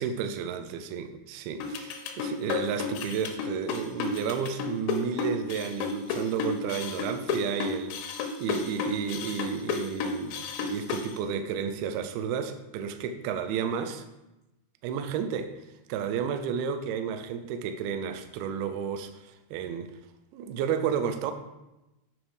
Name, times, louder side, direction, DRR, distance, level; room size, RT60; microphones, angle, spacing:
voice 1, 0.0-8.1 8.4-14.0 14.8-15.5 15.9-20.0 20.3-21.3, right 7 dB, 90° right, 2.2 m, -32 dB
sound 1, 1.6-11.1, left 5 dB, 85° left, 3.3 m, -31 dB
9.0 x 5.4 x 4.8 m
omnidirectional pair, 5.3 m